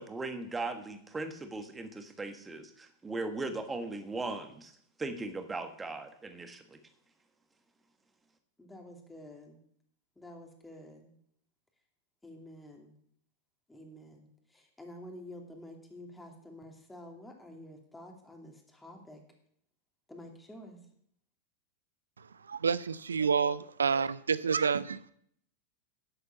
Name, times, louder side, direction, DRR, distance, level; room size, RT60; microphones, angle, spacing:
voice 1, 0.0-4.7 5.0-6.8, right 3 dB, 15° right, 7 dB, 1.7 m, -38 dB
voice 2, 8.6-9.6 10.2-11.1 12.2-12.9 13.7-19.2 20.1-20.8, left 1 dB, 5° left, 2 dB, 2.7 m, -49 dB
voice 3, 22.5-25.1, right 6 dB, 70° right, 17 dB, 0.4 m, -29 dB
11.5 x 7.9 x 7.1 m, 0.66 s
figure-of-eight pair, 90°, 0 cm